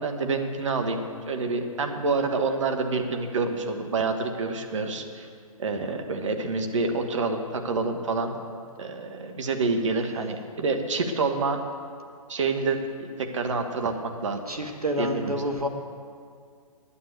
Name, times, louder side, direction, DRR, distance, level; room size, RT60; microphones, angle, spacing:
voice 1, 0.0-5.3 5.6-8.4 8.8-11.6 12.3-12.8 13.2-13.9 14.2-14.4 15.0-15.5, right 3 dB, 55° right, 5 dB, 1.4 m, -27 dB
voice 2, 14.5-15.7, equal, 85° right, 3 dB, 1.6 m, -28 dB
10.0 x 8.5 x 9.3 m, 2.2 s
figure-of-eight pair, 125°, 19 cm